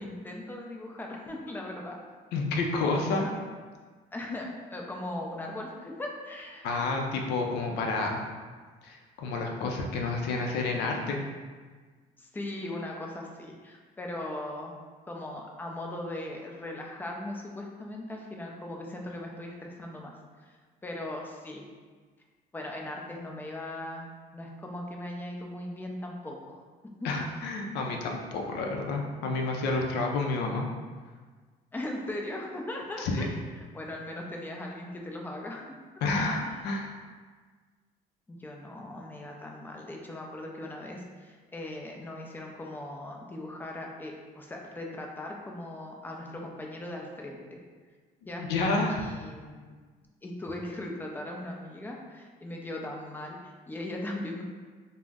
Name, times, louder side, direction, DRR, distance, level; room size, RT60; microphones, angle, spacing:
voice 1, 0.0-2.0 2.9-3.3 4.1-6.7 12.2-14.7 15.1-20.1 20.5-21.6 22.5-24.1 24.3-26.6 27.0-27.1 31.7-33.3 33.7-35.7 36.4-36.6 38.3-47.6 48.3-48.4 48.9-49.6 50.2-54.4, left 1 dB, 10° left, 0 dB, 0.4 m, -39 dB
voice 2, 2.3-3.3 6.6-8.2 8.8-11.2 27.0-30.6 33.0-33.3 36.0-37.0 48.4-49.0, left 3 dB, 85° left, 1 dB, 0.4 m, -29 dB
2.4 x 2.0 x 3.4 m, 1.5 s
cardioid pair, 110°, 17 cm